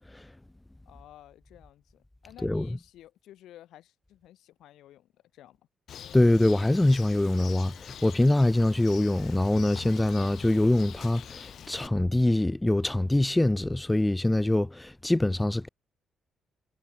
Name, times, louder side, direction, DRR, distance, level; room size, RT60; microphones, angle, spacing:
voice 1, 0.9-5.6, left 13 dB, 80° left, 3.5 m, -53 dB
Bird, 5.9-11.9, left 9 dB, 65° left, 1.3 m, -44 dB
voice 2, 6.1-15.7, left 1 dB, 10° left, 0.5 m, -24 dB
cardioid pair, 90°, 0 cm